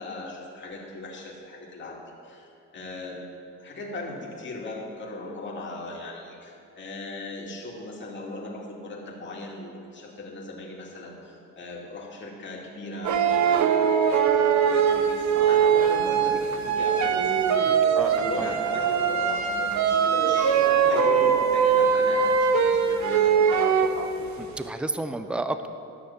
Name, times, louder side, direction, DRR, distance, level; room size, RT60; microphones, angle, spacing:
voice 1, 0.0-3.3 3.6-23.7, left 2 dB, 40° left, -3 dB, 2.4 m, -38 dB
sound 1, 13.0-24.4, right 7 dB, 65° right, 0.9 m, -22 dB
voice 2, 17.7-18.5 24.4-25.7, right 2 dB, 5° right, 9 dB, 0.6 m, -32 dB
12.5 x 6.3 x 7.1 m, 2.6 s
cardioid pair, 90°, 30 cm